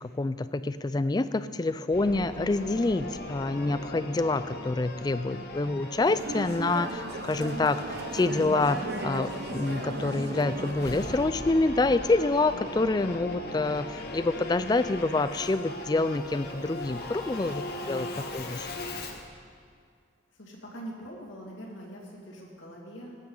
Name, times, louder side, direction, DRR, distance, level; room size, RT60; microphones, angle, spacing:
voice 1, 0.0-18.1 18.3-18.7, left 2 dB, 20° left, 13 dB, 0.3 m, -27 dB
Singing / Musical instrument, 1.9-19.3, left 2 dB, 50° left, 1.0 m, -39 dB
voice 2, 5.3-5.9 17.7-17.9 20.3-23.1, right 1 dB, 80° left, -3 dB, 2.2 m, -44 dB
sound 1, 6.1-11.1, right 2 dB, 55° right, 0.8 m, -36 dB
17.5 x 8.9 x 3.9 m, 2.2 s
head